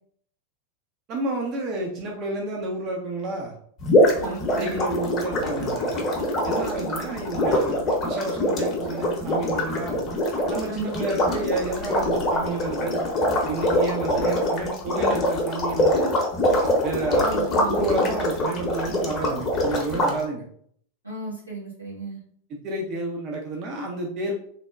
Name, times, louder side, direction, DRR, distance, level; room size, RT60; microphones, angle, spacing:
voice 1, 1.1-3.5 4.2-6.0 6.4-10.0 10.5-13.0 13.4-16.1 16.8-17.4 17.7-20.5 22.5-24.3, right 2 dB, 35° right, 0 dB, 0.5 m, -30 dB
sound 1, 3.8-20.1, left 1 dB, 30° left, 0.7 m, -24 dB
voice 2, 4.2-4.7 6.7-6.9 10.6-10.9 17.1-17.9 21.0-22.2, right 4 dB, 85° right, -7 dB, 1.3 m, -34 dB
3.2 x 2.1 x 2.4 m, 0.62 s
figure-of-eight pair, 90°, 0 cm